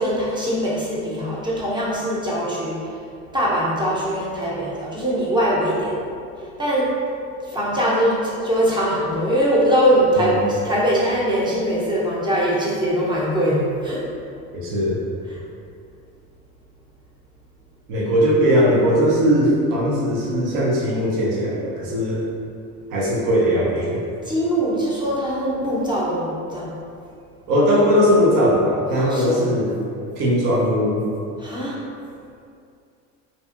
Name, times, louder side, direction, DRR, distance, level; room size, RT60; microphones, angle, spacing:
voice 1, 0.0-2.8 3.3-6.0 6.6-6.9 7.5-14.0 15.3-15.4 24.3-26.7 28.9-29.5 31.4-31.8, equal, 10° right, -7 dB, 0.7 m, -22 dB
voice 2, 10.2-10.5 14.5-15.0 17.9-22.2 22.9-24.0 27.5-29.7 30.2-31.1, equal, 60° right, -4 dB, 0.8 m, -19 dB
2.6 x 2.4 x 2.5 m, 2.4 s
hypercardioid pair, 85°, 37 cm